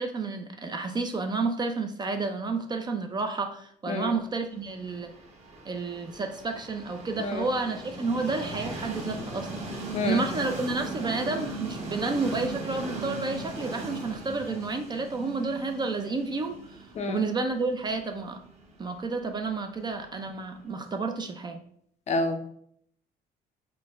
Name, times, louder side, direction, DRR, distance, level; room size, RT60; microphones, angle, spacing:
voice 1, 0.0-5.1 5.6-9.6 10.0-16.6 17.1-18.4 18.8-21.6, right 3 dB, 25° right, 6 dB, 0.4 m, -30 dB
Train, 4.7-20.5, right 2 dB, 40° right, 1.1 m, -38 dB
voice 2, 22.1-22.4, left 3 dB, 40° left, 6 dB, 0.5 m, -28 dB
4.4 x 2.1 x 3.4 m, 0.66 s
cardioid pair, 110°, 17 cm